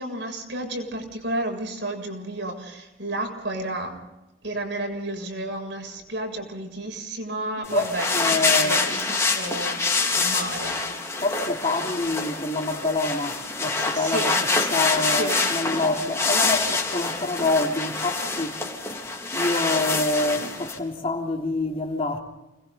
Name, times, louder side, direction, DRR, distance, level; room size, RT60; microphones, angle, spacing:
voice 1, 0.0-4.0 4.4-10.8 13.9-14.4 15.0-15.5, right 1 dB, 65° right, 7.4 m, -32 dB
sound 1, 7.6-20.8, left 3 dB, 15° left, 3.9 m, -26 dB
voice 2, 7.7-8.9 11.2-14.3 14.7-18.6 18.9-19.0 19.3-22.2, left 2 dB, 30° left, 3.4 m, -26 dB
29.5 x 22.0 x 4.0 m
head